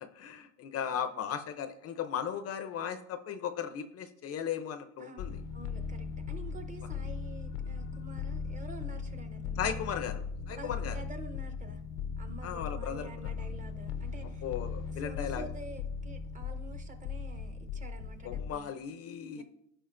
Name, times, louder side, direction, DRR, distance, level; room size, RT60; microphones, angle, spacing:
voice 1, 0.0-5.4 9.6-10.9 12.4-13.1 14.4-15.5 18.2-19.4, left 8 dB, 40° left, 10 dB, 0.6 m, -36 dB
voice 2, 5.0-9.8 10.5-11.8 12.2-14.4 14.8-18.8 19.3-19.4, right 2 dB, 20° right, 7 dB, 0.8 m, -49 dB
sound 1, 5.2-18.5, left 5 dB, 85° left, 0.7 m, -38 dB
14.5 x 5.0 x 2.5 m, 0.74 s
cardioid pair, 130°, 36 cm